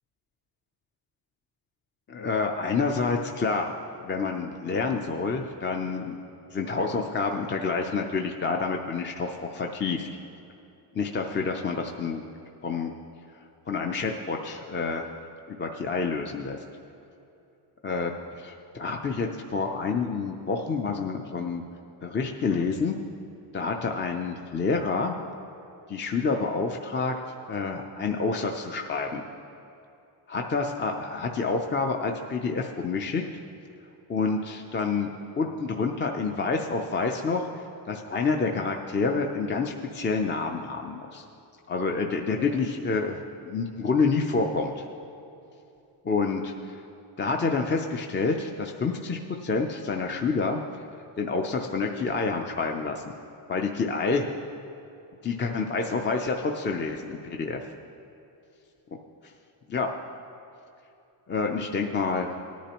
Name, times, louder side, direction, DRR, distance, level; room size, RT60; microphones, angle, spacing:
voice 1, 2.1-3.7 4.0-6.2 6.5-10.1 10.9-12.2 12.6-12.9 13.7-15.1 15.5-16.6 17.8-21.6 22.0-23.0 23.5-25.2 25.9-27.1 27.5-29.2 30.3-33.2 34.1-35.1 35.4-37.5 37.9-41.2 41.7-44.9 46.0-46.8 47.2-50.6 51.2-53.1 53.5-54.3 55.2-57.6 59.7-59.9 61.3-62.3, left 4 dB, 25° left, 2 dB, 0.5 m, -28 dB
18.0 x 10.0 x 2.9 m, 2.8 s
cardioid pair, 140°, 45 cm